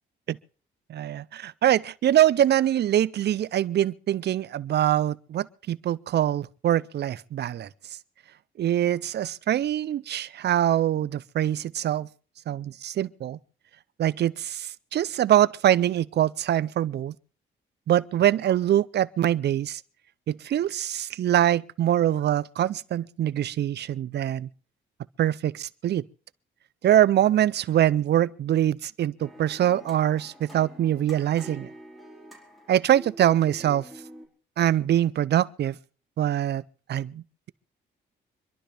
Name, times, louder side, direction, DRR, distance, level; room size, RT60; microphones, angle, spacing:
voice 1, 0.9-7.7 8.6-12.1 12.5-13.4 14.0-17.1 17.9-19.8 20.3-24.5 25.2-26.0 26.8-31.7 32.7-33.9 34.6-35.8 36.2-36.6 36.9-37.2, right 11 dB, 55° right, 0.6 m, -24 dB
sound 1, 29.2-34.3, right 1 dB, ahead, 4.5 m, -46 dB
26.5 x 11.5 x 3.4 m
cardioid pair, 90°, 20 cm